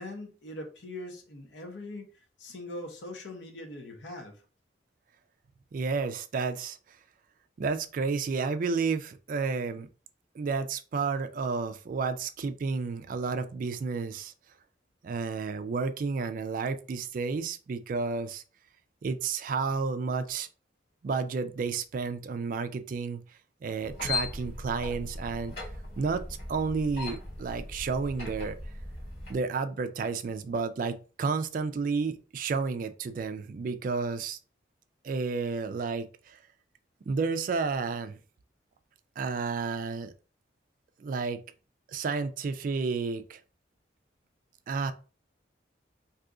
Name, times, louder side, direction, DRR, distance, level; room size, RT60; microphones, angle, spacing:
voice 1, 0.0-2.1 2.4-4.4, left 1 dB, 75° left, 0.8 m, -41 dB
voice 2, 5.7-6.8 7.6-9.9 10.3-14.3 15.0-18.4 19.0-20.5 21.0-23.2 23.6-25.5 26.0-26.2 26.5-28.6 29.3-34.4 35.0-36.4 37.1-38.2 39.2-40.1 41.0-41.4 41.9-43.4 44.7-44.9, right 4 dB, 45° right, 0.3 m, -31 dB
sound 1, 23.8-29.4, left 3 dB, 55° left, 1.1 m, -38 dB
2.7 x 2.4 x 3.6 m
head